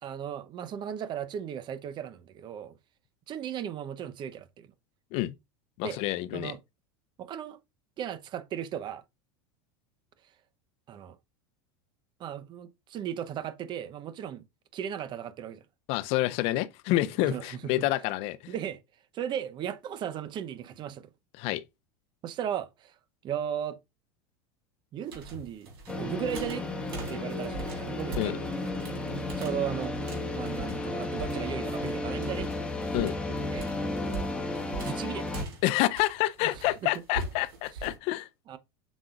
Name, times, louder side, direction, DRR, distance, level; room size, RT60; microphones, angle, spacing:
voice 1, 0.0-2.8 3.3-4.7 5.8-6.0 6.3-6.6 7.2-7.6 8.0-9.0 10.9-11.2 12.2-14.4 14.7-15.6 17.2-17.8 18.5-18.8 19.1-21.1 22.2-22.9 23.2-23.8 24.9-26.7 27.1-28.5 29.4-29.9 30.3-32.5 33.5-33.7 34.8-35.5 36.5-36.9 38.5-38.6, right 9 dB, 40° right, 0.9 m, -36 dB
voice 2, 5.8-6.6 15.9-18.5 21.4-21.6 28.2-28.4 32.9-33.1 35.6-38.3, left 16 dB, 55° left, 0.7 m, -28 dB
sound 1, 25.0-37.9, right 4 dB, 85° right, 3.8 m, -42 dB
sound 2, 25.9-35.4, left 2 dB, 10° left, 1.7 m, -33 dB
7.6 x 6.2 x 2.5 m
supercardioid pair, 110°, 12 cm